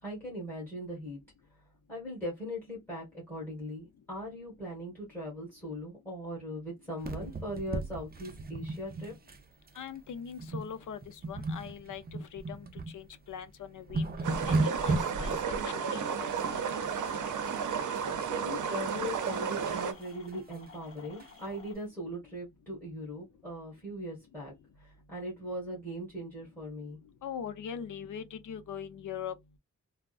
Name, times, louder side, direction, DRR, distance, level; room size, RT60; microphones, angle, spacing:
voice 1, 0.0-1.2 1.9-9.1 18.1-27.0, equal, 5° left, 1.4 m, -40 dB
sound 1, 7.0-9.4 9.7-9.9 10.4-10.7 11.0-12.9 13.4-13.5 13.7-15.6 17.5-18.0 18.4-19.8 20.3-20.4 20.7-20.8 21.2-21.3, right 2 dB, 30° right, 0.5 m, -35 dB
voice 2, 9.8-12.7 12.9-14.1 14.4-16.3 16.5-16.6 27.2-29.3, left 8 dB, 80° left, 0.5 m, -41 dB
sound 2, 14.2-19.9, right 6 dB, 75° right, 0.6 m, -33 dB
sound 3, 15.9-21.7, left 4 dB, 45° left, 1.0 m, -52 dB
3.4 x 2.0 x 2.3 m
wide cardioid pair, 150°, 30 cm